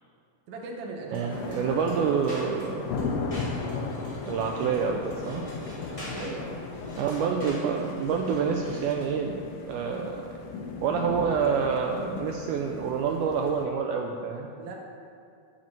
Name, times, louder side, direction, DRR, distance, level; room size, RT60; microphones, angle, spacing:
voice 1, 0.5-2.6 4.5-4.6 5.9-6.6 14.6-14.8, right 3 dB, 65° right, 0 dB, 2.2 m, -39 dB
sound 1, 1.1-9.2, equal, 10° left, 1.9 m, -47 dB
voice 2, 1.1-2.9 4.3-5.5 7.0-10.3 10.8-14.5, right 6 dB, 80° right, 2 dB, 1.8 m, -27 dB
sound 2, 1.3-13.7, left 4 dB, 75° left, 2.4 m, -36 dB
7.6 x 5.7 x 7.4 m, 2.3 s
omnidirectional pair, 4.0 m